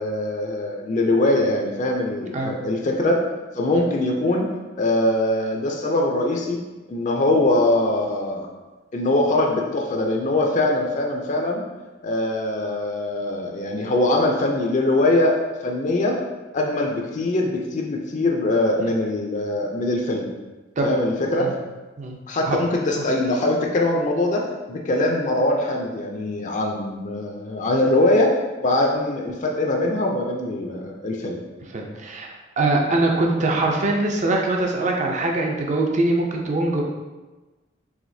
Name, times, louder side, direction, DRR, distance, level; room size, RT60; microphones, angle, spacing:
voice 1, 0.0-3.2 3.5-4.5 4.8-6.6 6.9-8.5 8.9-11.6 12.0-16.2 16.5-20.3 20.8-21.5 22.3-28.3 28.6-31.4, left 2 dB, 40° left, 0 dB, 0.4 m, -22 dB
voice 2, 31.7-36.8, right 2 dB, 40° right, 1 dB, 0.5 m, -22 dB
4.9 x 3.3 x 2.7 m, 1.2 s
head